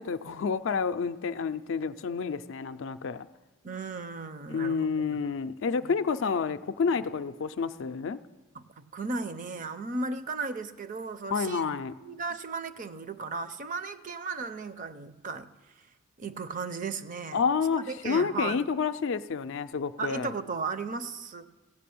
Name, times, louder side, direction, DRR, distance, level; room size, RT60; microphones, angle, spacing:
voice 1, 0.0-3.3 4.5-8.2 11.3-11.9 17.3-20.3, left 5 dB, 60° left, 11 dB, 0.4 m, -29 dB
voice 2, 3.6-5.2 5.8-6.0 8.6-11.7 12.0-15.5 16.2-17.4 17.9-18.6 20.0-21.5, right 4 dB, 35° right, 12 dB, 0.5 m, -35 dB
16.0 x 6.0 x 8.4 m, 1.2 s
head